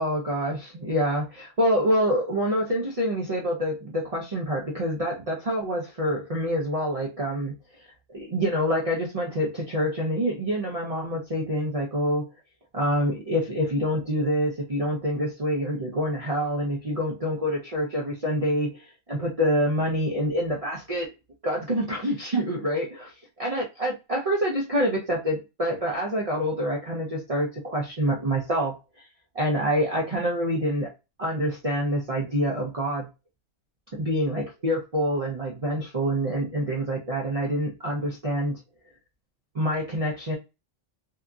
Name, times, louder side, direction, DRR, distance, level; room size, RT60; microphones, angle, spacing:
voice 1, 0.0-7.5 7.8-12.3 12.7-21.1 21.4-23.1 23.4-29.1 29.3-30.9 31.2-33.1 33.9-38.6 39.5-40.4, equal, 45° right, 0.4 m, -26 dB
2.8 x 2.5 x 2.3 m
omnidirectional pair, 1.4 m